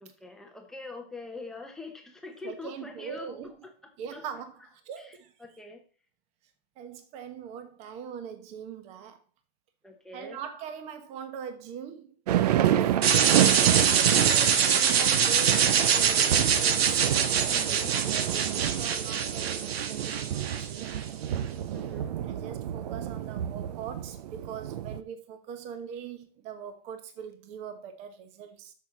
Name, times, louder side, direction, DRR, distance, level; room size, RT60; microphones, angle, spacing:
voice 1, 0.0-3.4 4.1-4.3 5.4-5.8 9.8-10.4 17.5-18.0 21.7-22.2, left 2 dB, ahead, 0.9 m, -43 dB
voice 2, 2.4-3.7 4.0-5.3 6.8-9.2 10.1-13.1 13.8-17.0 17.9-21.0 22.2-28.7, right 7 dB, 20° right, 1.1 m, -41 dB
sound 1, 12.3-25.0, right 11 dB, 45° right, 0.6 m, -29 dB
sound 2, 13.0-21.0, right 7 dB, 85° right, 1.5 m, -24 dB
6.8 x 6.6 x 7.1 m
supercardioid pair, 170°, 30 cm